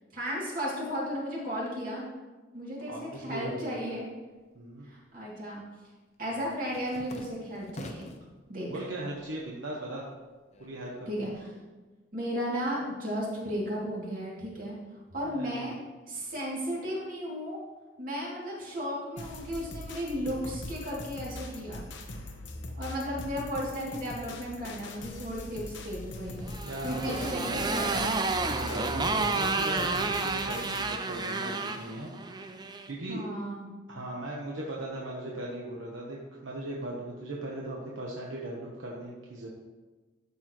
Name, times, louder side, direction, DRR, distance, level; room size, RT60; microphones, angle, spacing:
voice 1, 0.1-2.0 2.5-4.1 4.8-5.6 6.2-8.1 8.5-8.7 11.1-11.5 12.1-14.8 15.1-15.7 16.0-17.6 18.0-21.8 22.8-26.4 26.8-28.3 33.1-33.7, equal, 45° right, -5 dB, 2.8 m, -34 dB
voice 2, 2.8-4.0 4.5-4.9 8.7-10.1 10.6-11.4 15.2-15.7 22.5-22.8 26.6-32.1 32.9-33.2 33.9-39.5, right 1 dB, 85° right, -3 dB, 1.2 m, -38 dB
sound 1, 4.4-5.2 5.5-8.3 8.8-9.4 9.7-11.4, left 1 dB, 35° left, 0.7 m, -47 dB
sound 2, 19.2-30.9, left 1 dB, 70° left, 1.0 m, -42 dB
Motorcycle, 26.4-32.9, right 3 dB, 20° right, 0.5 m, -31 dB
12.0 x 6.8 x 3.1 m, 1.3 s
head